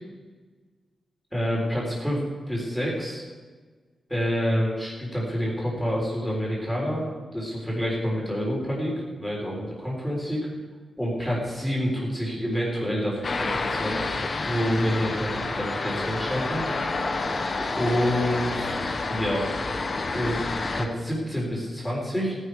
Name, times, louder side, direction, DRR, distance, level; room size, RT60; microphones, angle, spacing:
voice 1, 1.3-3.2 4.1-7.0 7.3-10.4 11.0-13.9 14.4-16.6 17.6-18.8 19.1-19.5 20.1-20.4 20.7-22.4, equal, 5° left, -4 dB, 4.0 m, -27 dB
sound 1, 13.2-20.9, left 3 dB, 35° left, 1.2 m, -29 dB
18.0 x 11.0 x 4.9 m, 1.4 s
wide cardioid pair, 155°, 0 cm